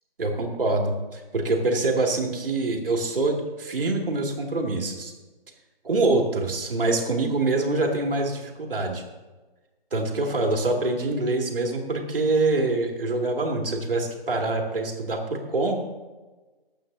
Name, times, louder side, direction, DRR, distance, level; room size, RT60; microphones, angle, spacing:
voice 1, 0.2-5.1 5.8-9.0 9.9-15.8, right 2 dB, 65° right, 1 dB, 2.4 m, -25 dB
20.5 x 8.5 x 2.7 m, 1.2 s
hypercardioid pair, 165°, 30 cm